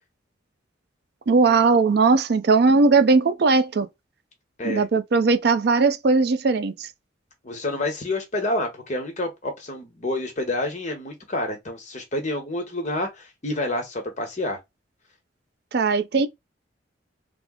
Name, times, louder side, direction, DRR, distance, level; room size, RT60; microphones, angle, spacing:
voice 1, 1.3-3.9 4.6-6.7 15.7-16.3, right 4 dB, 60° right, 0.4 m, -19 dB
voice 2, 7.4-14.6, left 1 dB, 40° left, 1.0 m, -28 dB
3.4 x 2.0 x 3.6 m
head